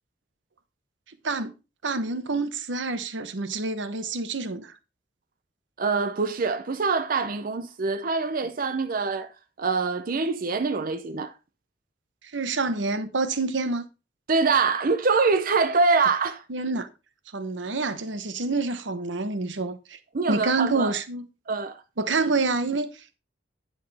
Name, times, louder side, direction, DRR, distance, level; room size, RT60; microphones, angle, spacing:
voice 1, 1.2-1.6 1.8-4.7 12.3-13.8 16.5-16.9 17.3-20.0 20.3-21.3 22.0-23.2, right 3 dB, 85° right, 1.0 m, -27 dB
voice 2, 5.8-9.3 9.6-11.3 14.3-16.4 20.1-20.9 21.5-21.8, right 4 dB, 50° right, 0.6 m, -24 dB
9.8 x 6.4 x 3.4 m
head